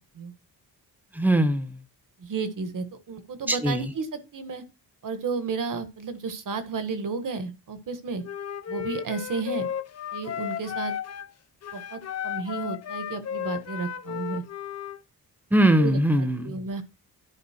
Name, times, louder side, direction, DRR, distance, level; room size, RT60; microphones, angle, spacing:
voice 1, 1.1-1.7 3.5-3.9 15.5-16.6, right 1 dB, 5° right, 10 dB, 1.0 m, -21 dB
voice 2, 2.2-4.1 4.3-4.6 5.0-8.2 8.7-9.7 10.1-10.9 11.7-14.4 15.8-16.0 16.4-16.8, right 4 dB, 55° right, 9 dB, 1.6 m, -32 dB
Wind instrument woodwind instrument, 8.2-11.3 11.6-15.0, left 9 dB, 40° left, 0.6 m, -34 dB
11.0 x 5.6 x 4.4 m, 0.27 s
wide cardioid pair, 170°, 39 cm